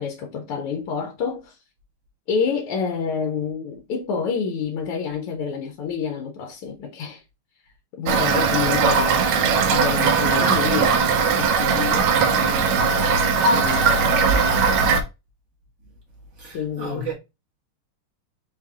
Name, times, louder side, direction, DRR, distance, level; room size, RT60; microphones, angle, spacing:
voice 1, 0.0-1.6 2.3-7.2 7.9-14.9 16.5-17.1, left 6 dB, 85° left, 1.5 m, -29 dB
Toilet flush / Fill (with liquid), 8.1-15.0, right 5 dB, 75° right, 1.5 m, -19 dB
voice 2, 16.3-17.1, right 4 dB, 35° right, 1.8 m, -33 dB
4.7 x 4.0 x 2.3 m
omnidirectional pair, 2.4 m